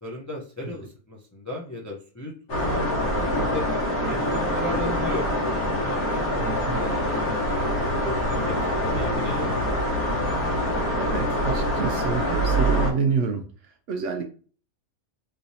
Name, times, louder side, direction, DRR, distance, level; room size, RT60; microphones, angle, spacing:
voice 1, 0.0-5.3 5.9-9.5, left 1 dB, 30° left, -2 dB, 0.3 m, -36 dB
sound 1, 2.5-12.9, equal, 80° left, 1.7 m, -25 dB
voice 2, 6.4-6.9 11.0-13.5 13.9-14.2, right 5 dB, 65° right, 4 dB, 0.8 m, -28 dB
3.4 x 3.1 x 2.7 m, 0.40 s
omnidirectional pair, 1.5 m